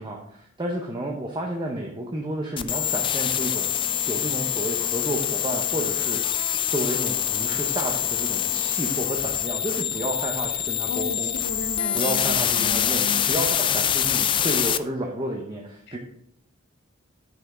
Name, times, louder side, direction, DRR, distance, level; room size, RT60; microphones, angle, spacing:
voice 1, 0.0-3.7 4.1-11.3 11.9-16.0, right 1 dB, 25° right, 0 dB, 0.8 m, -31 dB
sound 1, 2.6-14.8, left 9 dB, 25° left, 0.3 m, -25 dB
voice 2, 10.9-13.3 15.9-16.0, left 3 dB, 55° left, 11 dB, 0.6 m, -35 dB
9.1 x 5.7 x 3.8 m, 0.73 s
head